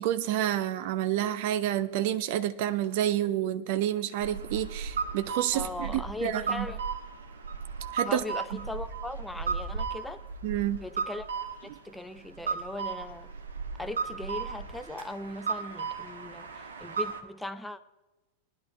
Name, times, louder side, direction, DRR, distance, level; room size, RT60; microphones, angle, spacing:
voice 1, 0.0-6.7 7.9-8.2 10.4-10.8 11.7-11.8, right 12 dB, 50° right, 0.7 m, -29 dB
sound 1, 4.2-17.2, right 5 dB, 70° right, 1.3 m, -35 dB
voice 2, 5.5-6.8 8.0-10.2 10.8-11.3 11.6-13.3 13.8-17.8, left 2 dB, 5° left, 0.7 m, -39 dB
20.0 x 10.5 x 3.4 m
figure-of-eight pair, 90°, 0 cm